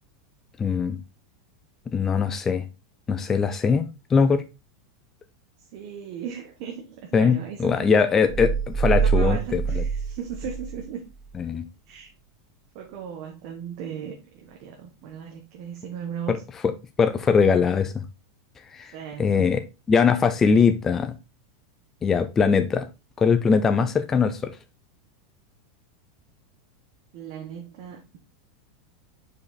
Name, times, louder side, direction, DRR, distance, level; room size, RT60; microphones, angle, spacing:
voice 1, 0.6-1.0 1.9-2.6 3.1-4.4 7.1-9.8 11.4-11.6 16.3-16.4 17.0-18.0 18.7-18.9 19.2-19.6 19.9-21.1 22.0-22.9 23.2-24.6, left 5 dB, 15° left, 0.4 m, -21 dB
voice 2, 5.7-7.9 9.0-11.0 11.9-12.1 12.7-14.2 14.4-16.4 18.9-19.5 27.1-28.2, right 8 dB, 45° right, 1.2 m, -37 dB
sound 1, 8.3-10.8 11.2-11.3, right 6 dB, 15° right, 1.0 m, -25 dB
5.3 x 4.8 x 4.1 m
supercardioid pair, 165°, 3 cm